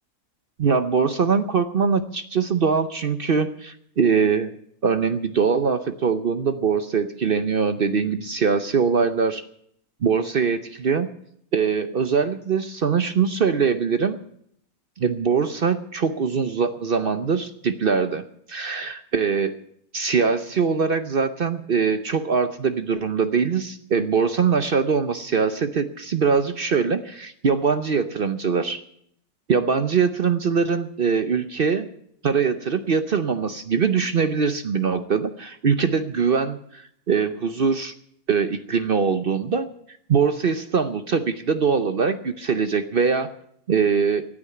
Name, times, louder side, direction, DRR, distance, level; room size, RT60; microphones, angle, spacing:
voice 1, 0.6-4.5 4.8-9.4 10.0-11.1 11.5-14.2 15.0-19.6 19.9-28.8 29.5-31.9 32.2-37.9 38.3-39.7 40.1-43.3 43.7-44.3, right 5 dB, 50° right, 10 dB, 0.7 m, -22 dB
15.0 x 8.8 x 9.7 m, 0.70 s
omnidirectional pair, 1.6 m